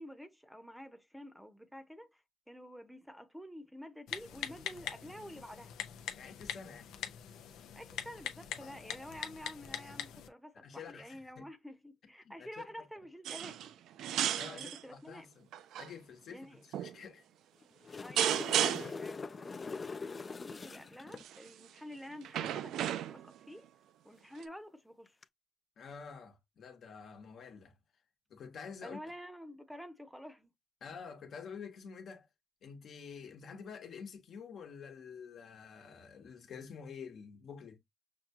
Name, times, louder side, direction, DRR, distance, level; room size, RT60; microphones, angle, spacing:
voice 1, 0.0-5.7 7.7-13.7 14.5-15.3 16.3-16.6 18.0-23.7 24.0-25.2 28.8-30.5, equal, ahead, 0.7 m, -49 dB
Typing, 4.1-10.3, left 9 dB, 85° left, 0.6 m, -43 dB
voice 2, 6.1-6.9 10.6-11.5 12.2-12.5 14.4-15.5 15.8-17.2 25.8-27.7 28.3-29.0 30.8-32.3 32.6-37.8, left 6 dB, 60° left, 1.1 m, -48 dB
sound 1, 13.2-13.7 14.0-14.8 15.5-15.9 16.7-17.0 18.2-19.1 21.2-21.5 22.2-23.4 24.4-24.5, right 11 dB, 80° right, 0.3 m, -33 dB
sound 2, 17.6-21.2 25.1-25.2, left 4 dB, 35° left, 0.3 m, -42 dB
5.9 x 2.3 x 2.9 m
cardioid pair, 90°, 0 cm